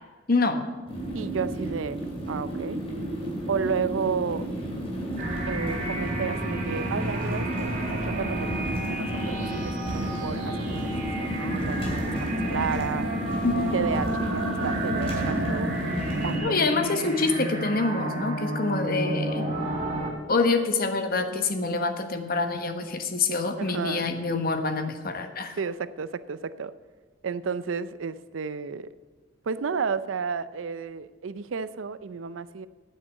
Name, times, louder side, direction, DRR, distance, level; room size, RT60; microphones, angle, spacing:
voice 1, 0.3-0.7 13.4-13.7 16.3-19.5 20.3-25.6, left 3 dB, 50° left, 7 dB, 1.1 m, -26 dB
sound 1, 0.9-16.4, equal, 30° left, 2.9 m, -31 dB
voice 2, 1.1-2.0 2.3-2.8 3.5-4.5 5.5-13.1 13.5-15.7 16.2-16.6 23.6-24.1 25.6-26.7 27.2-28.9 29.4-32.7, right 6 dB, 85° right, 15 dB, 0.5 m, -32 dB
sound 2, 5.2-20.1, right 1 dB, 45° right, 2.2 m, -31 dB
9.6 x 7.8 x 8.1 m, 1.4 s
head